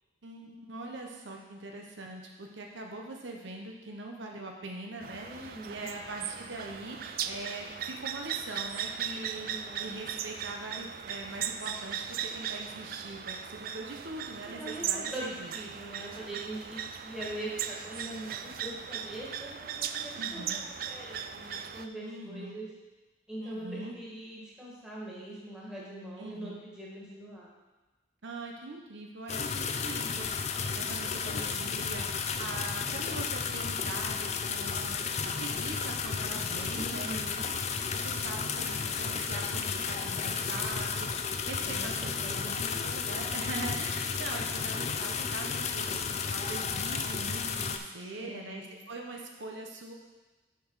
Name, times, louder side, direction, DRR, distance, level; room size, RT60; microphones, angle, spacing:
voice 1, 0.2-9.5 9.8-15.5 20.2-20.6 22.0-22.6 23.4-24.0 26.2-26.6 28.2-37.2 37.9-49.9, right 2 dB, 75° right, 1 dB, 1.0 m, -42 dB
sound 1, 5.0-21.9, right 8 dB, 50° right, 0.3 m, -38 dB
voice 2, 5.2-5.9 9.4-9.9 14.5-22.7 23.3-27.5 36.7-37.4 41.6-43.0 48.2-48.8, right 1 dB, 5° right, -7 dB, 1.9 m, -42 dB
sound 2, 29.3-47.8, left 6 dB, 35° left, 0.4 m, -33 dB
6.9 x 6.1 x 4.8 m, 1.2 s
head